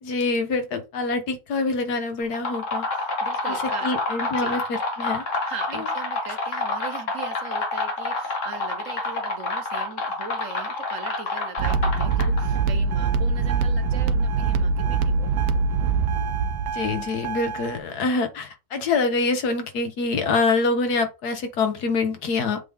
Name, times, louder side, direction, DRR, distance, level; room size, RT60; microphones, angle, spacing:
voice 1, 0.0-2.9 3.5-5.2 5.7-5.9 16.7-22.6, left 3 dB, 90° left, 7 dB, 1.7 m, -25 dB
sound 1, 2.2-12.6, left 3 dB, 55° left, 1.7 m, -28 dB
voice 2, 2.9-4.0 4.4-4.6 5.4-15.3, right 5 dB, 60° right, 8 dB, 1.3 m, -39 dB
sound 2, 11.6-17.8, right 4 dB, 75° right, 1.1 m, -23 dB
7.5 x 3.6 x 3.5 m, 0.28 s
omnidirectional pair, 1.6 m